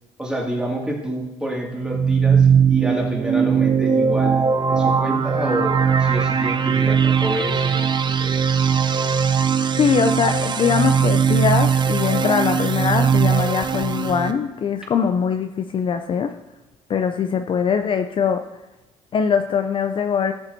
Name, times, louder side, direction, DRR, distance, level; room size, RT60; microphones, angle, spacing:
voice 1, 0.2-8.4, equal, 5° right, -2 dB, 2.3 m, -28 dB
sound 1, 1.8-14.3, right 7 dB, 35° right, 0.6 m, -19 dB
voice 2, 9.8-16.3 16.9-18.4 19.1-20.3, left 7 dB, 40° left, 7 dB, 0.5 m, -21 dB
14.5 x 7.0 x 2.7 m, 1.0 s
cardioid pair, 95°, 13 cm